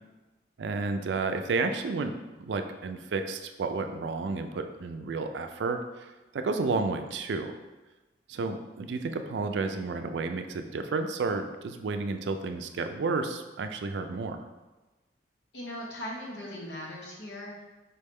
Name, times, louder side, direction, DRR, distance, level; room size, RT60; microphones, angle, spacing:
voice 1, 0.6-2.1 2.4-6.1 6.3-7.6 8.3-14.4, right 4 dB, 85° right, 7 dB, 0.4 m, -31 dB
voice 2, 15.5-17.6, left 1 dB, 85° left, -3 dB, 1.1 m, -39 dB
4.4 x 3.2 x 3.4 m, 1.1 s
head